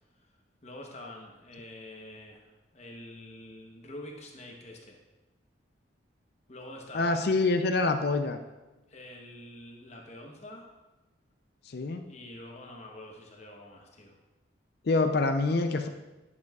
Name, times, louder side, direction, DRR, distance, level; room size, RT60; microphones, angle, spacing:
voice 1, 0.6-5.0 6.5-7.3 8.9-10.7 12.1-14.2, left 1 dB, 35° left, 0 dB, 0.9 m, -46 dB
voice 2, 6.9-8.4 11.7-12.0 14.8-15.9, left 3 dB, 50° left, 7 dB, 0.4 m, -26 dB
10.5 x 7.0 x 2.3 m, 1.1 s
head